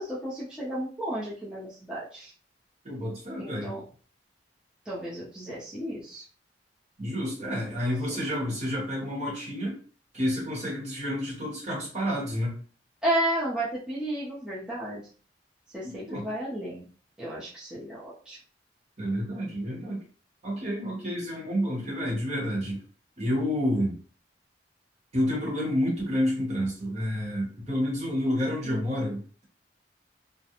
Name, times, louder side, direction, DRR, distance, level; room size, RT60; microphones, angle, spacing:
voice 1, 0.0-2.3 3.4-3.8 4.9-6.2 7.7-7.8 13.0-15.0 15.7-16.9 17.2-18.4 28.7-28.8, right 1 dB, 5° right, -9 dB, 0.6 m, -32 dB
voice 2, 2.8-3.7 7.0-9.8 10.1-12.6 15.8-16.2 19.0-20.0 20.4-22.8 23.2-24.0 25.1-29.4, equal, 40° right, -3 dB, 1.2 m, -29 dB
2.4 x 2.1 x 2.8 m, 0.40 s
head